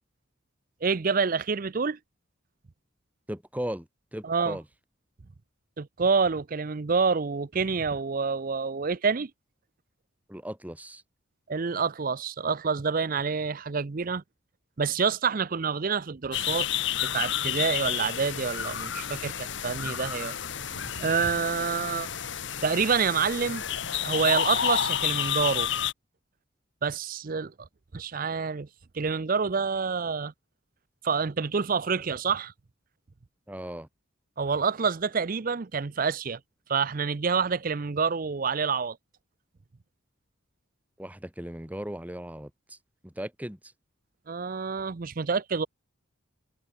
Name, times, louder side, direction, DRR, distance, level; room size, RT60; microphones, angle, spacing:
voice 1, 0.8-2.0 4.2-4.6 5.8-9.3 11.5-14.2 14.8-16.7 17.0-20.3 20.8-22.1 22.6-23.6 24.0-25.7 26.8-27.7 27.9-28.7 28.9-30.3 31.0-32.5 34.4-36.4 36.7-39.0 44.3-45.7, right 5 dB, 40° right, 0.5 m, -27 dB
voice 2, 3.3-4.6 10.3-11.0 33.5-33.9 41.0-42.8 43.0-43.6, equal, 5° right, 1.9 m, -37 dB
sound 1, 16.3-25.9, left 9 dB, 60° left, 1.2 m, -30 dB
head